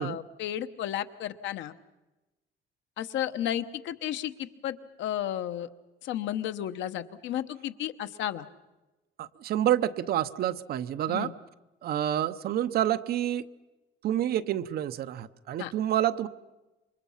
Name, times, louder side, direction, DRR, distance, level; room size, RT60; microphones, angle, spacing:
voice 1, 0.0-1.7 3.0-5.7 6.0-8.5 11.1-11.3 15.6-15.7, left 11 dB, 70° left, 10 dB, 1.2 m, -33 dB
voice 2, 9.2-11.3 11.8-13.4 14.0-16.3, right 11 dB, 50° right, 12 dB, 0.8 m, -28 dB
28.0 x 24.5 x 5.7 m, 1.1 s
cardioid pair, 175°, 20 cm